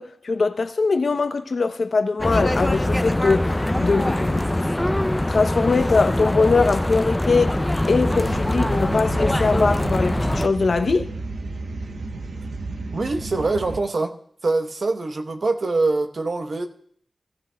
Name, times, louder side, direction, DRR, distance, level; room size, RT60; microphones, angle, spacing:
voice 1, 0.0-4.5 4.9-7.5 7.9-11.1, left 4 dB, 60° left, 0.7 m, -22 dB
sound 1, 2.2-10.5, left 1 dB, 10° left, 0.5 m, -23 dB
sound 2, 8.0-13.8, right 3 dB, 80° right, 0.9 m, -33 dB
voice 2, 12.9-14.1 14.4-16.7, right 3 dB, 55° right, 0.9 m, -24 dB
18.0 x 13.5 x 2.2 m
wide cardioid pair, 105°, 0 cm